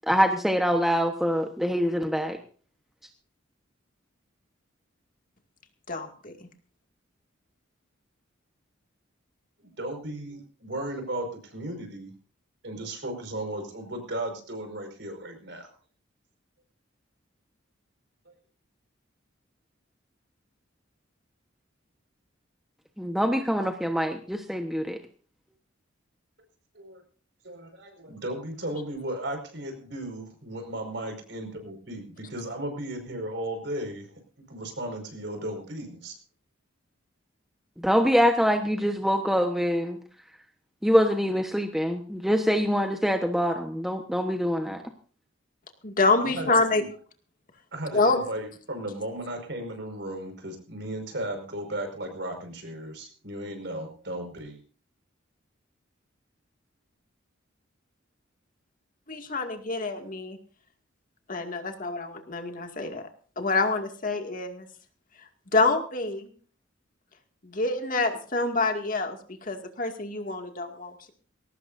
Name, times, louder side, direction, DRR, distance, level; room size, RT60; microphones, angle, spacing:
voice 1, 0.1-2.4 23.0-25.0 37.8-40.0 40.8-44.8, equal, ahead, 4 dB, 1.1 m, -24 dB
voice 2, 5.9-6.3 45.8-46.8 47.9-48.2 59.1-60.4 61.3-63.1 63.4-64.7 65.5-66.3 67.4-71.1, left 3 dB, 45° left, 5 dB, 2.2 m, -27 dB
voice 3, 9.6-12.1 12.6-15.7 18.3-18.4 26.7-27.0 27.4-36.2 46.2-46.9 47.7-54.6, right 1 dB, 60° right, 5 dB, 5.3 m, -35 dB
21.5 x 18.0 x 2.7 m, 0.42 s
head